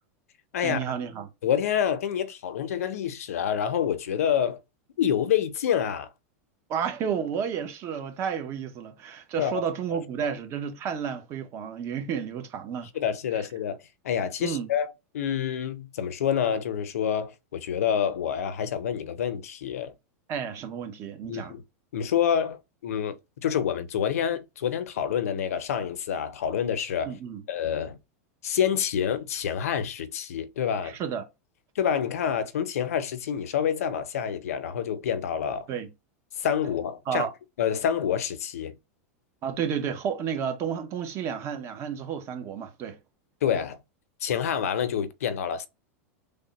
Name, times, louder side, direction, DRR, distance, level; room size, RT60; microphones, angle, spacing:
voice 1, 0.6-1.3 6.7-12.9 14.4-14.7 20.3-21.6 27.0-27.4 30.8-31.2 35.7-35.9 37.1-37.3 39.4-43.0, right 7 dB, 35° right, 0.8 m, -31 dB
voice 2, 1.4-4.6 5.0-6.1 9.4-9.6 10.2-10.3 12.9-13.8 14.0-19.9 21.2-21.6 21.9-23.2 23.4-27.1 27.5-28.0 28.4-31.0 31.8-35.7 36.4-37.3 37.6-38.7 43.4-43.8 44.2-45.7, left 8 dB, 90° left, 0.6 m, -27 dB
3.5 x 2.1 x 4.0 m
supercardioid pair, 135°, 8 cm